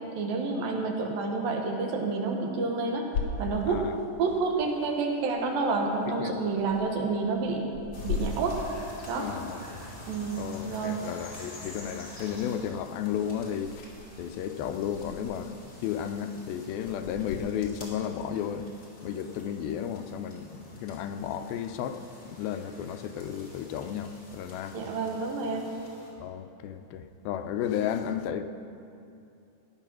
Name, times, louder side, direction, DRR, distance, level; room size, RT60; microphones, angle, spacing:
voice 1, 0.2-3.1 3.4-3.8 4.2-7.7 8.0-8.6 9.1-9.2 10.1-11.0 24.7-25.7, right 4 dB, 75° right, 1 dB, 3.0 m, -29 dB
sound 1, 3.1-17.4, left 4 dB, 60° left, 2.1 m, -41 dB
voice 2, 3.6-4.0 6.1-6.3 9.2-9.8 10.4-13.9 14.2-18.7 19.0-24.8 26.2-28.4, left 9 dB, 85° left, 8 dB, 2.5 m, -33 dB
sound 2, 7.9-26.1, left 1 dB, 30° left, 2.6 m, -48 dB
16.0 x 9.7 x 6.1 m, 2.7 s
omnidirectional pair, 4.2 m